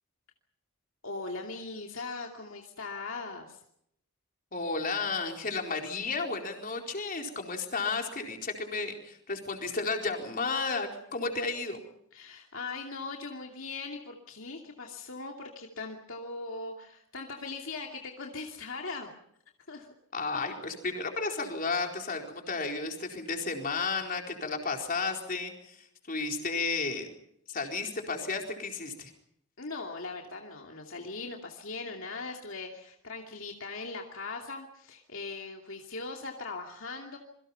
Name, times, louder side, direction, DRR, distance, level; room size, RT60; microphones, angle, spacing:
voice 1, 1.0-3.6 12.1-19.1 19.7-19.9 20.3-20.6 29.6-37.2, left 3 dB, 65° left, 1 dB, 2.6 m, -40 dB
voice 2, 4.5-11.8 20.1-27.1 27.5-29.1, left 4 dB, 40° left, 2 dB, 4.3 m, -33 dB
27.5 x 23.5 x 5.7 m, 0.74 s
head